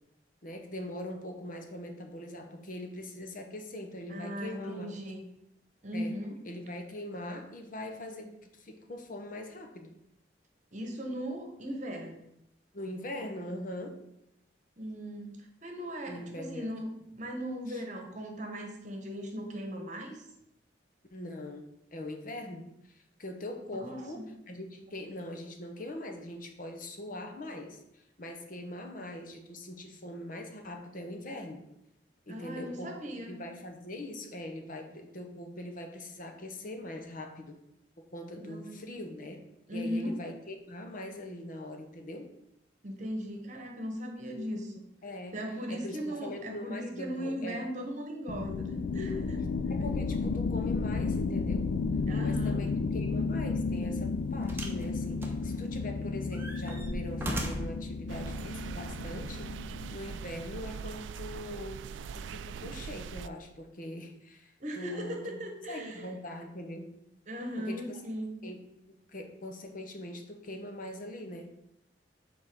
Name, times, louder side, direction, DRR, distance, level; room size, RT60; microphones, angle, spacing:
voice 1, 0.4-4.9 5.9-6.2 6.4-9.9 12.7-14.0 16.1-17.0 17.7-17.8 21.1-31.7 32.3-37.6 38.1-39.4 39.7-42.3 45.0-45.4 45.7-47.6 49.7-51.7 52.2-65.4 65.7-66.9 67.6-68.0 68.4-68.6 68.9-71.5, left 1 dB, 50° left, 5 dB, 0.9 m, -42 dB
voice 2, 4.1-5.2 5.8-6.3 10.7-12.2 14.8-15.4 15.6-20.2 23.7-24.2 32.3-33.4 38.4-38.8 39.7-40.1 42.8-44.7 45.3-49.4 52.1-52.7 64.6-66.1 67.3-68.3, equal, 45° right, 2 dB, 1.2 m, -38 dB
sound 1, 48.3-60.5, left 4 dB, 65° left, 0.4 m, -33 dB
sound 2, 53.3-53.5 54.5-54.8 55.2-55.9 56.3-57.8 58.7-58.8, right 1 dB, 15° right, 1.0 m, -38 dB
sound 3, 58.1-63.3, right 6 dB, 85° right, 0.3 m, -41 dB
5.5 x 4.3 x 6.2 m, 0.82 s
head